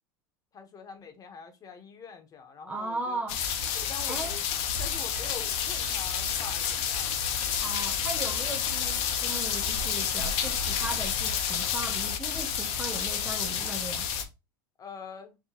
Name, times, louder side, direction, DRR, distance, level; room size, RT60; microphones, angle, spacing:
voice 1, 0.5-3.2 3.7-4.4 4.8-7.3 14.8-15.4, left 5 dB, 30° left, 1.2 m, -44 dB
voice 2, 2.6-3.4 4.1-4.4 7.6-14.1, right 2 dB, 10° right, 0.6 m, -37 dB
sound 1, 3.3-14.2, left 8 dB, 55° left, 1.0 m, -29 dB
4.9 x 3.2 x 2.9 m
hypercardioid pair, 110°, 12 cm